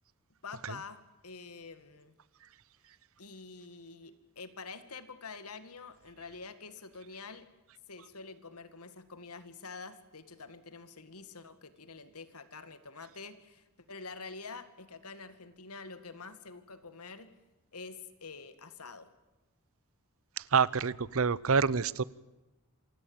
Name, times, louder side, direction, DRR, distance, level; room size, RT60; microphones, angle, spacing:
voice 1, 0.4-2.2 3.2-7.5 7.9-17.3 17.7-19.1, left 4 dB, 85° left, 12 dB, 2.1 m, -47 dB
voice 2, 20.4-22.0, right 5 dB, 65° right, 21 dB, 0.7 m, -27 dB
27.5 x 17.0 x 8.8 m, 1.1 s
head